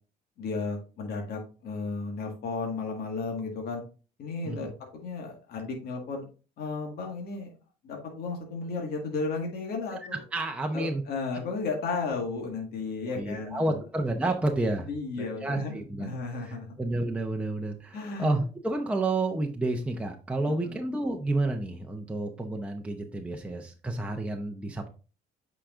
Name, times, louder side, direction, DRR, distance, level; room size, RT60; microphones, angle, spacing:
voice 1, 0.4-3.8 4.2-6.2 6.6-7.5 7.8-10.2 10.7-13.8 14.9-16.8 17.9-18.4 20.4-20.8, left 4 dB, 65° left, 1 dB, 1.8 m, -34 dB
voice 2, 10.3-11.0 13.1-14.9 15.2-16.1 16.4-24.9, right 2 dB, 5° right, 2 dB, 0.8 m, -30 dB
8.7 x 5.0 x 2.5 m, 0.35 s
cardioid pair, 110°, 17 cm